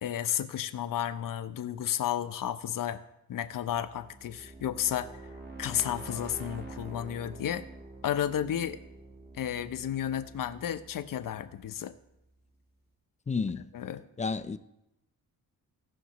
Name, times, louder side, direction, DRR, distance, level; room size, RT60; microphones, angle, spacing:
voice 1, 0.0-3.0 3.3-5.1 5.6-7.7 8.0-8.8 9.4-11.9 13.7-14.0, left 10 dB, 60° left, 0.7 m, -32 dB
sound 1, 3.5-12.3, right 2 dB, 25° right, 1.6 m, -47 dB
voice 2, 13.3-13.7 14.2-14.6, left 4 dB, 20° left, 0.5 m, -31 dB
17.5 x 6.1 x 3.0 m
cardioid pair, 95°, 37 cm